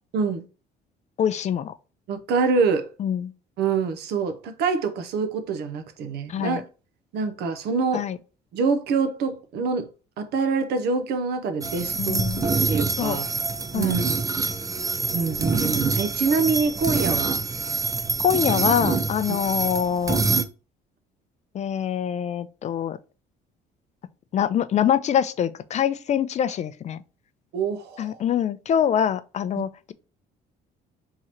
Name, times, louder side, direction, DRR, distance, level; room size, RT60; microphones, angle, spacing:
voice 1, 0.1-0.4 2.1-2.9 3.6-6.7 7.1-8.0 8.5-9.9 10.2-12.2 12.7-13.3 13.7-14.2 15.1-17.4 27.5-28.2, right 4 dB, 75° right, 0.8 m, -25 dB
voice 2, 1.2-1.7 3.0-3.3 6.3-6.6 7.9-8.2 12.0-12.5 13.0-13.2 13.7-14.0 18.2-20.2 21.5-23.0 24.3-27.0 28.0-29.9, left 9 dB, 45° left, 0.4 m, -24 dB
sound 1, 11.6-20.4, right 4 dB, 20° right, 0.5 m, -25 dB
3.7 x 3.0 x 4.3 m
cardioid pair, 110°, 17 cm